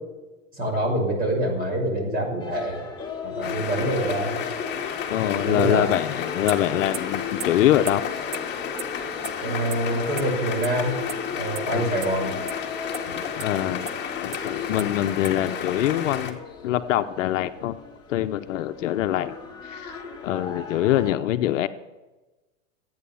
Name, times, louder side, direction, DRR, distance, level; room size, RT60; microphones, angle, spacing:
voice 1, 0.5-2.9 3.2-4.4 5.2-5.9 9.4-11.0 11.3-12.4 13.0-13.2, right 1 dB, 20° right, 0 dB, 5.8 m, -26 dB
sound 1, 2.4-21.1, left 5 dB, 10° left, 2.6 m, -37 dB
sound 2, 3.4-16.3, left 7 dB, 25° left, 2.2 m, -32 dB
voice 2, 5.1-8.0 11.7-12.0 13.4-17.8 18.1-19.3 19.6-20.0 20.2-21.7, left 13 dB, 70° left, 10 dB, 0.9 m, -24 dB
sound 3, 6.5-6.6 6.9-7.0 7.4-7.5 7.9-8.0 8.3-8.4 8.8-8.9 9.2-9.3 9.7-9.8 10.2-10.3 10.6-10.7 11.1-11.2 11.6-11.7 12.0-12.1 12.5-12.6 12.9-13.0 13.4-13.5 13.9-14.0 14.3-14.4 14.8-14.9 15.2-15.3, right 13 dB, 70° right, 1.0 m, -32 dB
15.0 x 9.6 x 7.1 m, 1.1 s
hypercardioid pair, 130°, 39 cm